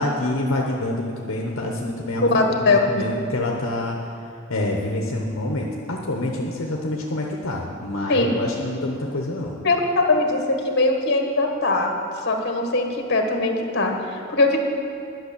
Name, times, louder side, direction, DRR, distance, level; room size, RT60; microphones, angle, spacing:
voice 1, 0.0-4.0 4.5-9.6, left 1 dB, 70° left, 0 dB, 1.0 m, -27 dB
voice 2, 2.2-3.0 8.1-8.3 9.6-11.9 12.2-14.6, left 2 dB, 50° left, 3 dB, 1.4 m, -21 dB
11.0 x 6.3 x 8.3 m, 2.5 s
head